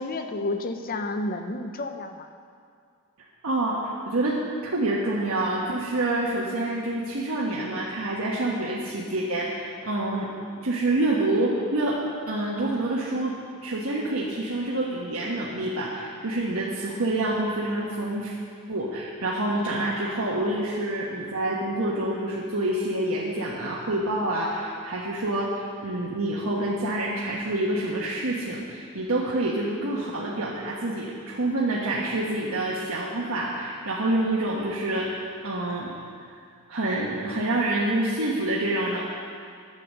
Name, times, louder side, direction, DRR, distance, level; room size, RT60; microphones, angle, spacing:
voice 1, 0.0-2.3, left 2 dB, 40° left, 7 dB, 0.7 m, -30 dB
voice 2, 3.2-4.4 4.6-10.3 10.6-12.0 12.3-13.3 13.6-18.4 18.7-35.9 36.7-39.0, right 1 dB, 70° right, -5 dB, 1.2 m, -27 dB
10.5 x 7.7 x 6.6 m, 2.2 s
head